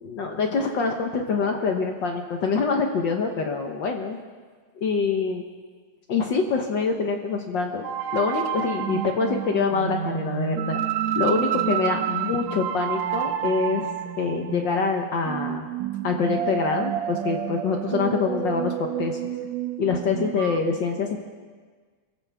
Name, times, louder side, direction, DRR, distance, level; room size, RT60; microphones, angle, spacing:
voice 1, 0.1-4.2 4.8-5.4 6.1-7.8 8.1-10.8 11.1-13.9 14.2-15.7 16.0-19.2 19.8-21.2, left 5 dB, 70° left, 3 dB, 1.1 m, -25 dB
sound 1, 7.8-20.6, right 10 dB, 75° right, 1.8 m, -29 dB
27.5 x 14.5 x 3.5 m, 1.5 s
omnidirectional pair, 3.5 m